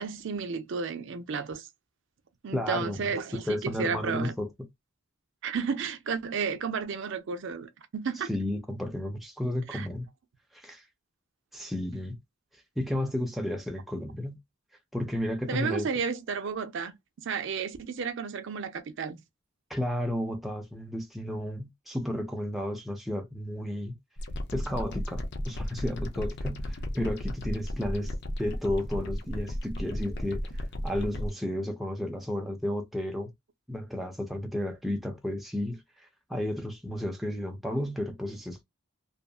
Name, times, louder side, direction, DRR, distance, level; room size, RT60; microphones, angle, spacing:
voice 1, 0.0-1.7 2.4-4.3 5.4-8.3 9.7-9.9 15.5-16.9 17.2-19.2, right 5 dB, 60° right, 0.4 m, -32 dB
voice 2, 2.5-3.0 3.5-4.5 8.2-10.1 10.5-10.8 11.5-12.2 12.8-14.4 14.9-15.9 19.7-24.0 24.5-33.3 33.7-38.6, left 1 dB, ahead, 0.4 m, -33 dB
sound 1, 24.2-31.3, left 1 dB, 55° left, 0.5 m, -34 dB
2.7 x 2.4 x 2.3 m
head